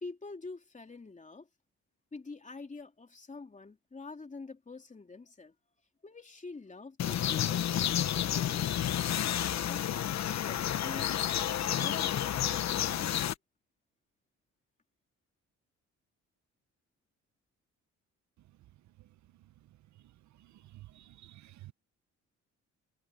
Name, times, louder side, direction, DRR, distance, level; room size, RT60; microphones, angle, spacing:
voice 1, 0.0-1.5 2.1-5.5 6.0-8.9 9.5-10.0 10.5-13.3, left 3 dB, 25° left, 3.1 m, -46 dB
sound 1, 7.0-13.3, left 10 dB, 65° left, 1.3 m, -30 dB
voice 2, 20.9-21.7, right 15 dB, 70° right, 0.9 m, -52 dB
cardioid pair, 90°, 30 cm